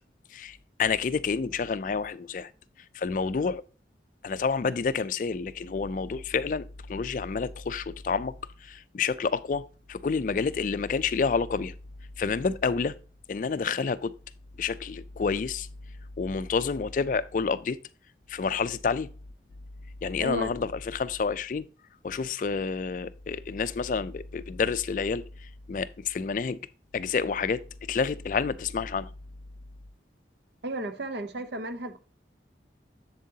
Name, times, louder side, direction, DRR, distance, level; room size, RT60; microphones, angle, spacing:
voice 1, 0.3-2.5 2.9-3.6 4.2-8.3 8.6-11.7 12.2-13.0 13.3-14.1 14.6-15.7 16.2-17.8 18.3-19.1 20.0-21.7 22.0-26.6 26.9-27.6 27.9-29.1, left 5 dB, 45° left, 0.3 m, -29 dB
voice 2, 20.2-20.5 30.6-32.0, right 1 dB, 70° right, 0.7 m, -33 dB
7.4 x 7.3 x 2.8 m
head